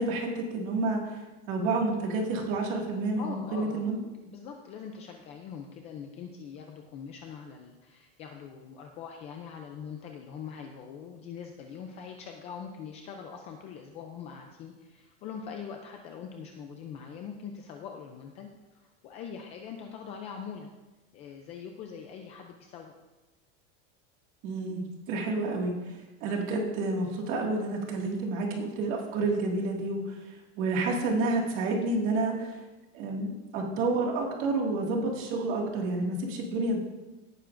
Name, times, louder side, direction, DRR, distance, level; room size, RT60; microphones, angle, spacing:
voice 1, 0.0-4.0 24.4-32.6 32.9-36.8, right 2 dB, 40° right, 0 dB, 2.0 m, -30 dB
voice 2, 3.2-3.8 4.3-20.7 21.1-23.0, left 7 dB, 20° left, 3 dB, 0.4 m, -43 dB
17.5 x 9.3 x 2.5 m, 1.1 s
supercardioid pair, 180°, 33 cm